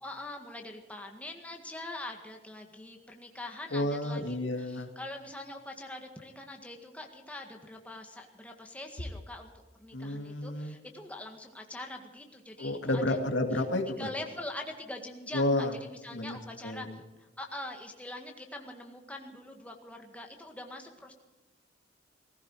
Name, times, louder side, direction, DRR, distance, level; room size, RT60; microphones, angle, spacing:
voice 1, 0.0-13.2 13.5-13.6 13.9-16.9 17.2-21.1, left 1 dB, 10° left, 2 dB, 1.8 m, -43 dB
voice 2, 3.7-4.9 9.9-10.7 12.6-14.1 15.3-15.7 16.1-16.4 16.6-17.0, left 1 dB, 80° left, 5 dB, 2.1 m, -31 dB
18.5 x 15.5 x 4.8 m, 1.1 s
head